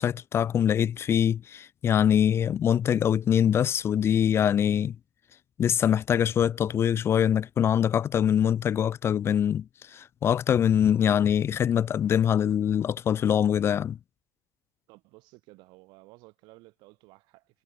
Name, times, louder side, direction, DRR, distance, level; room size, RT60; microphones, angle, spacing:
voice 1, 0.0-5.0 5.6-14.0, left 9 dB, 30° left, 0.4 m, -24 dB
voice 2, 14.9-17.6, right 24 dB, 70° right, 5.4 m, -54 dB
cardioid pair, 135°, 8 cm